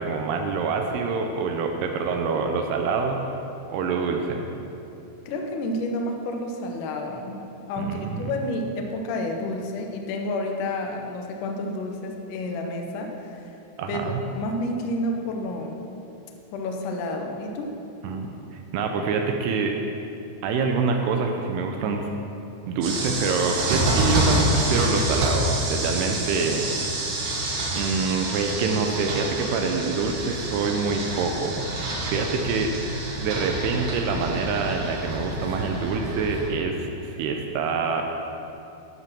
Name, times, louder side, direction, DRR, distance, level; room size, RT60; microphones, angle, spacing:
voice 1, 0.0-3.2 3.7-4.5 7.8-8.4 13.8-14.2 18.0-18.3 18.7-19.7 20.4-22.1 22.7-27.0 27.7-32.7 33.2-38.0, right 4 dB, 80° right, 3 dB, 2.5 m, -26 dB
voice 2, 5.3-13.5 13.9-15.8 16.5-17.7, left 1 dB, 85° left, 3 dB, 1.8 m, -30 dB
sound 1, 22.8-36.5, right 1 dB, 65° right, 2.7 m, -27 dB
13.0 x 4.8 x 6.0 m, 2.8 s
omnidirectional pair, 5.0 m